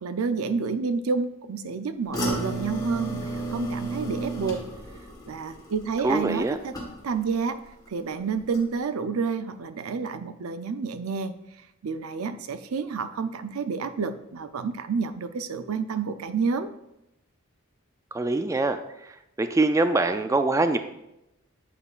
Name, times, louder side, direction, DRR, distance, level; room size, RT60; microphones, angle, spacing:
voice 1, 0.0-4.6 5.3-6.8 7.0-7.6 7.9-11.3 11.8-16.7, right 5 dB, 80° right, 11 dB, 0.5 m, -29 dB
sound 1, 2.1-7.3 7.7-8.1 8.5-8.6, right 2 dB, 15° left, 1.4 m, -33 dB
voice 2, 6.0-6.6 18.1-18.8 19.4-20.8, right 2 dB, 15° right, 9 dB, 0.3 m, -23 dB
8.4 x 8.1 x 2.4 m, 0.86 s
head